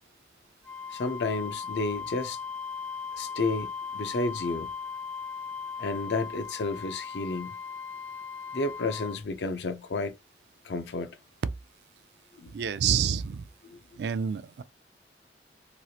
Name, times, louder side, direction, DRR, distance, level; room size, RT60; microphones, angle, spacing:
Wind instrument woodwind instrument, 0.6-9.2, left 5 dB, 5° left, 0.3 m, -38 dB
voice 1, 0.9-2.4 3.1-4.7 5.8-7.5 8.5-10.1 10.6-11.2 12.4-12.5 13.6-13.8, left 3 dB, 75° left, 0.5 m, -31 dB
voice 2, 12.5-13.4 14.0-14.6, right 7 dB, 70° right, 0.3 m, -28 dB
3.1 x 2.4 x 2.7 m
head